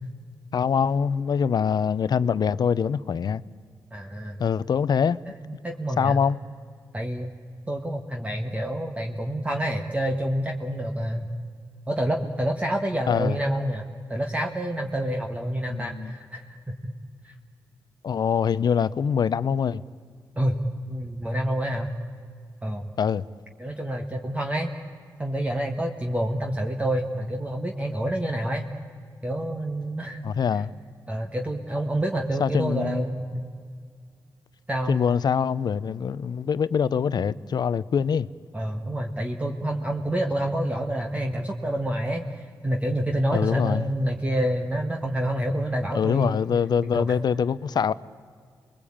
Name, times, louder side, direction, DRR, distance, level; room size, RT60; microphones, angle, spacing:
voice 1, 0.5-3.4 4.4-5.2 6.0-6.4 13.1-13.4 15.7-16.1 18.0-19.8 23.0-23.2 30.2-30.7 32.4-33.0 34.9-38.3 43.3-43.8 45.9-47.9, left 7 dB, 65° left, 0.7 m, -24 dB
voice 2, 3.9-4.4 5.4-6.1 6.9-7.3 7.7-11.3 11.9-16.7 17.2-17.3 20.4-20.6 20.9-21.9 22.6-22.9 23.6-24.7 25.2-28.6 29.2-30.2 30.5-30.6 31.1-33.5 34.7-35.0 38.5-42.3 42.6-46.4 46.9-47.1, right 1 dB, 20° right, 1.7 m, -28 dB
28.5 x 21.5 x 8.8 m
cardioid pair, 90°, 8 cm